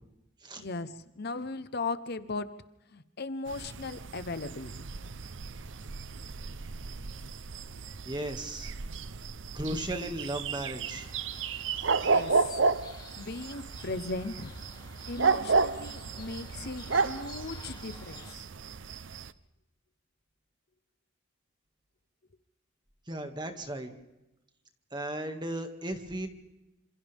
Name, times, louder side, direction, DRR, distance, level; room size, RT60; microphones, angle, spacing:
voice 1, 0.6-2.5 2.9-4.7 12.0-12.6 13.2-14.5 15.1-18.5, left 3 dB, 55° left, 13 dB, 0.9 m, -37 dB
sound 1, 3.5-19.3, right 4 dB, 65° right, 0.8 m, -32 dB
voice 2, 8.1-8.8 9.5-11.1 23.1-23.9 24.9-26.3, right 1 dB, 20° right, 6 dB, 2.1 m, -35 dB
sound 2, 10.8-18.3, left 4 dB, 20° left, 2.8 m, -52 dB
27.5 x 27.0 x 3.6 m, 0.96 s
head